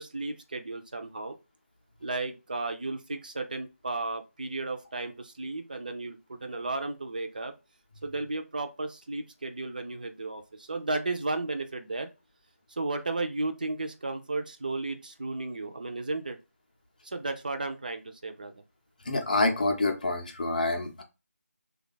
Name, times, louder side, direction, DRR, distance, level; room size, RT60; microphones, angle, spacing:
voice 1, 0.0-1.4 2.0-7.5 8.0-12.1 12.7-16.4 17.0-18.6, right 2 dB, 35° right, 7 dB, 0.4 m, -34 dB
voice 2, 19.1-21.0, left 2 dB, 30° left, 4 dB, 0.6 m, -27 dB
3.1 x 2.3 x 3.9 m, 0.27 s
figure-of-eight pair, 165°, 8 cm